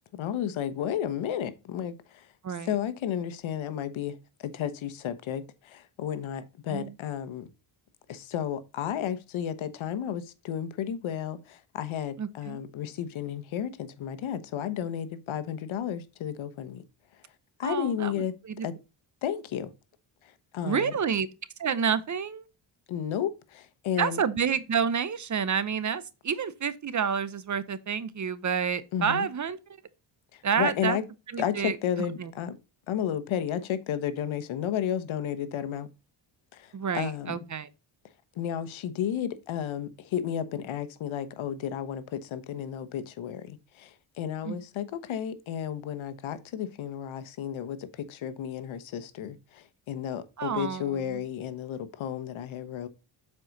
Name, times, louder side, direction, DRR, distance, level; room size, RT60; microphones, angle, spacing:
voice 1, 0.1-2.3 2.6-4.1 4.4-7.5 8.1-16.8 17.6-18.3 18.6-18.7 19.2-19.7 20.5-20.9 22.9-24.2 28.9-29.3 30.3-31.0 31.4-32.6 32.9-35.9 36.5-37.4 38.4-52.9, left 9 dB, 75° left, 1.1 m, -32 dB
voice 2, 12.2-12.6 17.6-18.7 20.6-21.3 21.6-22.5 24.0-29.6 30.4-31.0 31.3-31.8 32.2-32.3 36.7-37.7 44.4-44.6 50.4-51.2, right 7 dB, 35° right, 0.8 m, -29 dB
7.6 x 4.8 x 4.0 m
cardioid pair, 90°, 48 cm